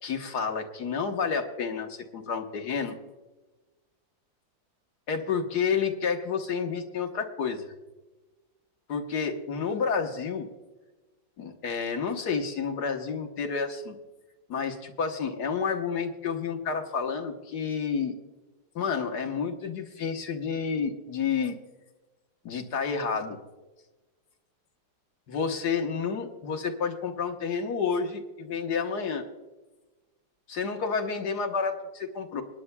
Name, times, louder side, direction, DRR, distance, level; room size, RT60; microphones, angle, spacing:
voice 1, 0.0-3.0 5.1-7.7 8.9-10.5 11.4-14.0 14.5-18.1 18.7-21.6 22.4-23.4 25.3-29.3 30.5-32.4, left 6 dB, 60° left, 3 dB, 1.6 m, -30 dB
26.5 x 9.6 x 2.2 m, 1.2 s
omnidirectional pair, 2.1 m